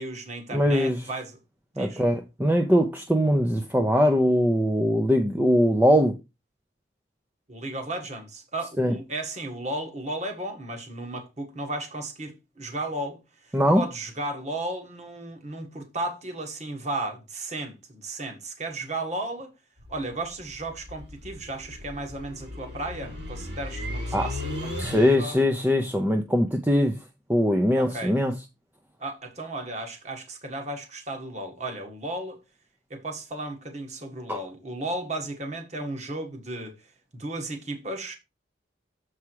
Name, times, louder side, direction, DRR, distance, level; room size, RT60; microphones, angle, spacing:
voice 1, 0.0-1.4 1.8-2.0 7.5-19.5 19.9-25.4 27.7-28.1 29.0-32.4 32.9-36.9 37.1-38.2, right 2 dB, 35° right, 1.6 m, -34 dB
voice 2, 0.5-1.0 1.8-6.2 8.8-8.9 13.5-13.8 24.1-24.3 24.8-27.0 27.3-28.3 34.3-34.4, equal, 10° right, 0.6 m, -21 dB
sound 1, 19.8-25.5, left 1 dB, 60° right, 3.3 m, -36 dB
7.2 x 4.8 x 4.6 m
head